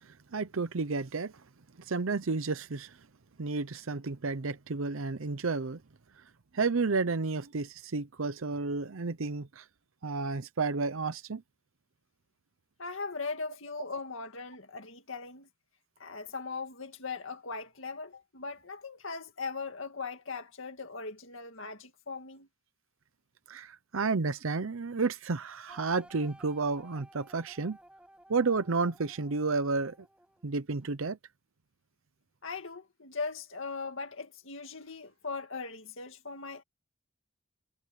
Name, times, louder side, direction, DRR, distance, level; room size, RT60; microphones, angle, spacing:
voice 1, 0.0-1.3 1.8-3.0 3.4-5.8 6.5-9.7 10.0-11.4 23.5-27.8 28.3-30.0 30.4-31.2, right 4 dB, 75° right, 0.7 m, -31 dB
voice 2, 12.8-15.5 16.0-22.5 32.4-36.6, left 4 dB, 65° left, 2.1 m, -39 dB
sound 1, 25.7-30.6, right 1 dB, 5° right, 6.7 m, -56 dB
head